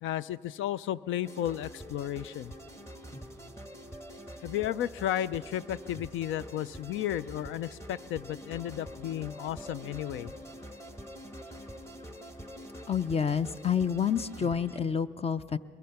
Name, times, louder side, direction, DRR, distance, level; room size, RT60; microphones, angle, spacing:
voice 1, 0.0-2.5 4.4-10.3, left 12 dB, 80° left, 19 dB, 0.5 m, -33 dB
sound 1, 1.2-14.8, equal, 15° left, 1.7 m, -46 dB
voice 2, 12.9-15.6, left 7 dB, 30° left, 15 dB, 0.5 m, -28 dB
22.0 x 21.5 x 5.8 m, 2.4 s
cardioid pair, 90°, 20 cm